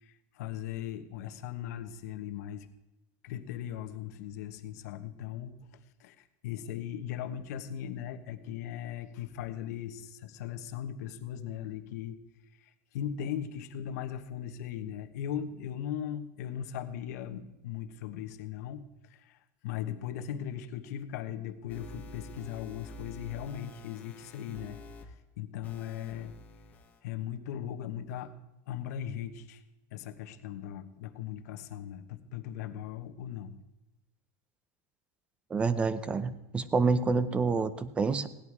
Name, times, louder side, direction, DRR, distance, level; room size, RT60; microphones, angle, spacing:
voice 1, 0.0-2.7 3.2-5.7 6.0-12.2 12.9-18.8 19.2-19.4 19.6-24.8 25.4-26.3 27.0-28.3 28.7-29.6 29.9-33.6, left 10 dB, 75° left, 8 dB, 1.2 m, -38 dB
sound 1, 21.7-25.0 25.6-27.0, left 1 dB, 15° left, 1.3 m, -48 dB
voice 2, 35.5-38.3, right 4 dB, 15° right, 15 dB, 0.5 m, -28 dB
17.0 x 10.5 x 4.8 m, 0.99 s
supercardioid pair, 170°, 9 cm